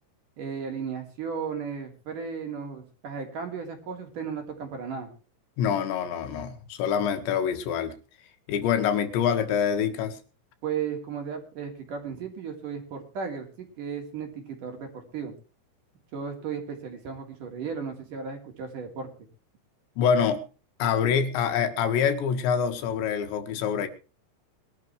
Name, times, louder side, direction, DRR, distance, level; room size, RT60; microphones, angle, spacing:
voice 1, 0.4-5.1 10.6-15.3 16.1-19.1, right 6 dB, 50° right, 4.2 m, -35 dB
voice 2, 5.6-8.0 8.5-10.2 20.0-20.4 20.8-23.9, left 7 dB, 85° left, 4.0 m, -25 dB
22.5 x 12.0 x 3.2 m
omnidirectional pair, 5.0 m